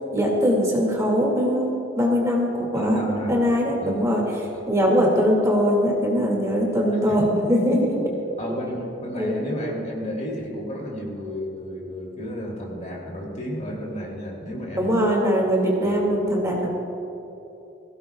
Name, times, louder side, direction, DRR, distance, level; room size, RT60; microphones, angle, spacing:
voice 1, 0.1-3.0 3.3-4.2 4.7-8.0 9.2-9.3 14.8-16.7, equal, 15° right, -2 dB, 2.2 m, -21 dB
voice 2, 2.7-3.4 3.8-4.0 7.0-7.2 8.4-14.9 15.8-16.1, equal, 40° left, -2 dB, 2.9 m, -31 dB
21.0 x 16.5 x 2.4 m, 2.9 s
head